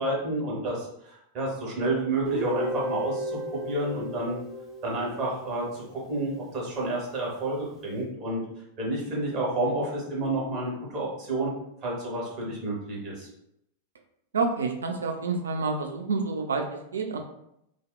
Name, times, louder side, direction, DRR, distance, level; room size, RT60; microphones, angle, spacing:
voice 1, 0.0-4.4 4.8-8.4 8.8-11.5 11.8-13.3, right 2 dB, 40° right, -4 dB, 1.0 m, -30 dB
Guitar, 2.3-6.1, right 1 dB, 10° right, 0.7 m, -33 dB
voice 2, 14.3-17.2, right 4 dB, 70° right, 4 dB, 0.3 m, -28 dB
2.6 x 2.1 x 2.3 m, 0.79 s
figure-of-eight pair, 90°, 0 cm